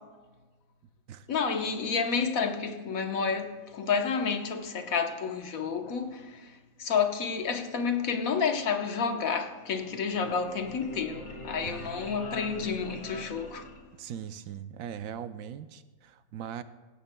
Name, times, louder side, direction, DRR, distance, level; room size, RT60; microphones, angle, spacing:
voice 1, 1.3-13.7, left 5 dB, 70° left, 1.4 m, -30 dB
sound 1, 9.5-14.3, left 1 dB, 50° left, 2.1 m, -44 dB
voice 2, 11.6-12.1 14.0-16.6, right 9 dB, 75° right, 1.0 m, -40 dB
16.5 x 16.0 x 2.2 m
omnidirectional pair, 1.5 m